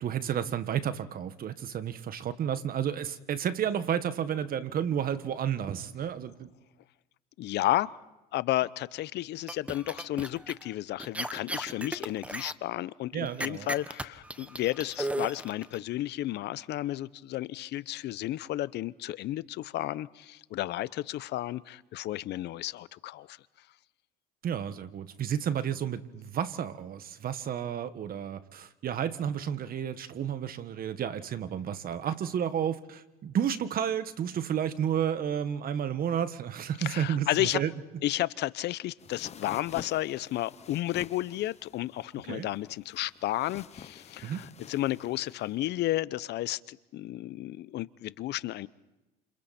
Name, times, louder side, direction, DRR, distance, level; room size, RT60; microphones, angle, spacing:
voice 1, 0.0-6.5 13.1-13.7 24.4-37.7 42.3-42.5 44.2-44.5, right 9 dB, 45° right, 12 dB, 1.7 m, -31 dB
voice 2, 7.4-7.9 8.3-23.4 36.8-37.6 38.0-48.7, left 15 dB, 60° left, 18 dB, 0.8 m, -32 dB
sound 1, 9.5-10.6 11.0-12.5 13.4-15.8, right 1 dB, 5° right, 1.2 m, -35 dB
sound 2, 39.0-45.6, left 7 dB, 35° left, 1.0 m, -49 dB
30.0 x 28.0 x 4.4 m, 1.0 s
supercardioid pair, 90°, 20 cm